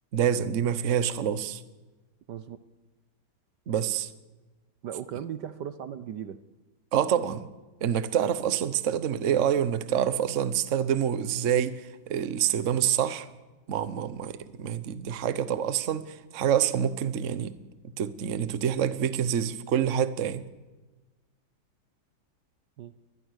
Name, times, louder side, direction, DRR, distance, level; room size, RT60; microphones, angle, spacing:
voice 1, 0.1-1.6 3.7-4.1 6.9-7.5 7.8-13.3 13.7-17.5 18.0-20.4, right 9 dB, 45° right, 1.1 m, -27 dB
voice 2, 2.3-2.6 4.8-6.4 22.8-22.9, right 9 dB, 65° right, 1.3 m, -37 dB
23.5 x 20.0 x 6.5 m
omnidirectional pair, 2.2 m